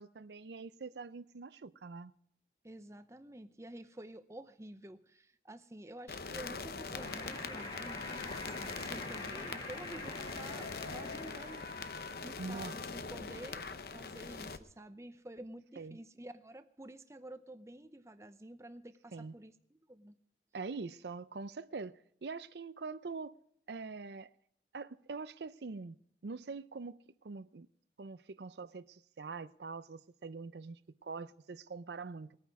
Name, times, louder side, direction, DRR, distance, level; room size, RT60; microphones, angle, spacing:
voice 1, 0.0-2.1 10.8-11.0 12.4-12.8 15.8-16.0 19.1-19.4 20.5-23.4 23.7-24.3 24.7-27.7 28.0-32.4, right 4 dB, 75° right, 0.5 m, -44 dB
voice 2, 2.6-11.6 12.2-19.5 19.9-20.2, right 1 dB, 15° right, 0.7 m, -50 dB
sound 1, 6.1-14.6, left 4 dB, 55° left, 0.8 m, -42 dB
sound 2, 6.9-12.3, left 1 dB, 25° left, 2.3 m, -46 dB
20.0 x 9.3 x 4.7 m
head